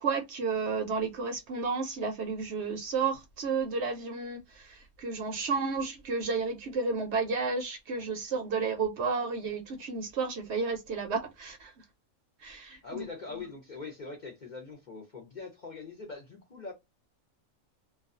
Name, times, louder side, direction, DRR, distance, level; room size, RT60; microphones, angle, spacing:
voice 1, 0.0-11.7 12.4-13.0, right 4 dB, 65° right, 0.8 m, -32 dB
voice 2, 12.8-16.7, left 4 dB, 50° left, 0.6 m, -42 dB
2.3 x 2.3 x 2.4 m
omnidirectional pair, 1.4 m